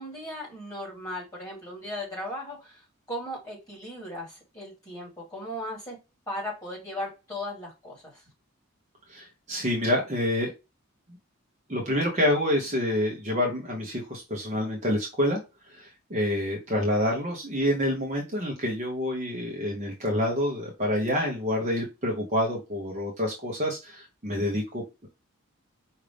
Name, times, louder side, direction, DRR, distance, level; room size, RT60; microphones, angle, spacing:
voice 1, 0.0-2.8 3.1-6.0 6.3-8.2, left 1 dB, 15° left, -4 dB, 2.8 m, -37 dB
voice 2, 9.1-10.5 11.7-15.4 15.7-25.1, left 1 dB, 30° right, 0 dB, 0.9 m, -27 dB
5.0 x 2.7 x 3.3 m, 0.26 s
head